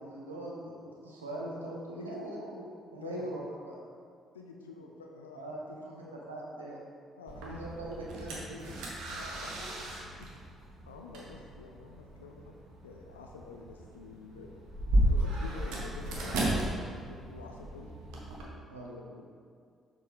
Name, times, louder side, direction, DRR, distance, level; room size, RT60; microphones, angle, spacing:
voice 1, 0.0-3.8 5.3-6.8 7.4-8.7 18.7-18.9, right 1 dB, 85° right, -3 dB, 0.9 m, -41 dB
voice 2, 4.3-6.2 7.2-7.8 9.0-9.5 10.2-10.6 10.9-12.5 12.8-14.5 15.0-17.9 18.2-19.2, left 4 dB, 80° left, 1 dB, 0.4 m, -49 dB
sound 1, 7.3-18.4, right 1 dB, 65° right, 1.2 m, -34 dB
6.7 x 6.0 x 3.6 m, 2.2 s
figure-of-eight pair, 45°, 0 cm